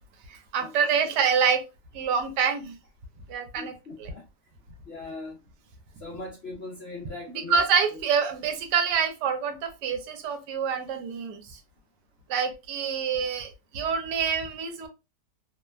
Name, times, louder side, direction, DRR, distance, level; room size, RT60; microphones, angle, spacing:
voice 1, 0.5-1.6 1.9-2.8 3.3-3.7 4.0-4.1 7.3-11.6 12.3-14.9, right 6 dB, 80° right, 1.2 m, -26 dB
voice 2, 3.5-4.2 4.9-5.4 6.0-7.6, left 2 dB, 65° left, 0.6 m, -39 dB
3.0 x 2.1 x 2.2 m
omnidirectional pair, 1.8 m